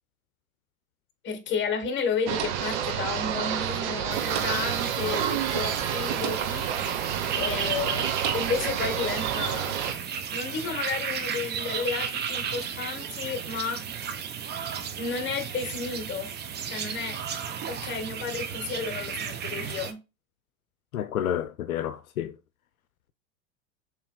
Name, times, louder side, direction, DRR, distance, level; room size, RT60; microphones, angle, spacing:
voice 1, 1.2-6.7 7.3-9.8 10.3-13.9 15.0-16.3 16.6-17.2 17.7-20.0, left 5 dB, 25° left, 1.2 m, -32 dB
sound 1, 2.3-9.9, right 9 dB, 55° right, 1.0 m, -29 dB
sound 2, 4.1-19.9, right 8 dB, 25° right, 0.7 m, -34 dB
voice 2, 20.9-22.3, left 10 dB, 80° left, 0.6 m, -30 dB
6.9 x 3.1 x 2.3 m
hypercardioid pair, 90°, 42 cm